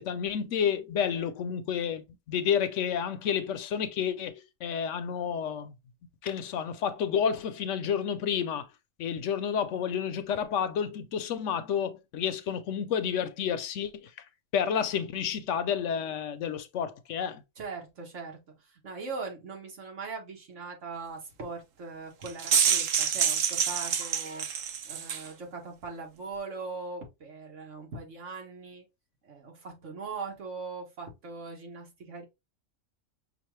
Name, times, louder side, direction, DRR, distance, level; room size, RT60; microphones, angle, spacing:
voice 1, 0.0-5.7 6.2-8.7 9.0-14.1 14.5-17.4, left 8 dB, 75° left, 0.9 m, -30 dB
voice 2, 17.6-24.5 24.8-28.9 29.2-32.2, right 4 dB, 65° right, 1.8 m, -40 dB
sound 1, 22.2-25.3, right 7 dB, 85° right, 1.1 m, -27 dB
5.9 x 2.5 x 3.0 m
omnidirectional pair, 1.3 m